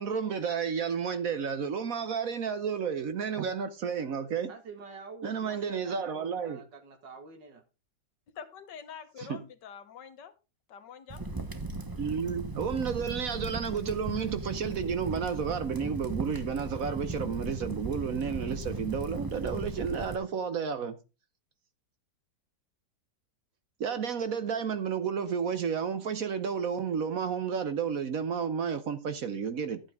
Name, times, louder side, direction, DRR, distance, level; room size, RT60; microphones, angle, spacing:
voice 1, 0.0-4.5 5.2-6.6 9.3-9.4 12.0-21.0 23.8-29.8, right 6 dB, 60° right, 1.1 m, -31 dB
voice 2, 4.5-7.6, right 4 dB, 75° right, 2.5 m, -47 dB
voice 3, 8.3-10.3 10.7-11.2, left 7 dB, 70° left, 1.7 m, -46 dB
Crackle, 11.1-20.2, right 2 dB, 30° right, 0.3 m, -37 dB
12.5 x 8.6 x 3.6 m
omnidirectional pair, 2.0 m